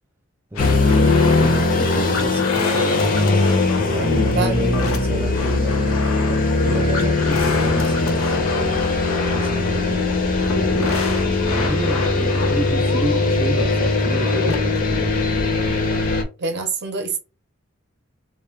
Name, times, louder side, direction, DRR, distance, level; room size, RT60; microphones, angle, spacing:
voice 1, 0.5-3.2 3.9-8.8 9.3-10.1 10.5-11.0 11.5-15.2, right 2 dB, 10° right, 0.3 m, -30 dB
sound 1, 0.6-14.6, left 3 dB, 90° left, 0.6 m, -30 dB
sound 2, 0.6-16.2, left 3 dB, 40° left, 0.5 m, -20 dB
voice 2, 16.4-17.2, right 4 dB, 55° right, 0.6 m, -25 dB
2.2 x 2.1 x 3.1 m
head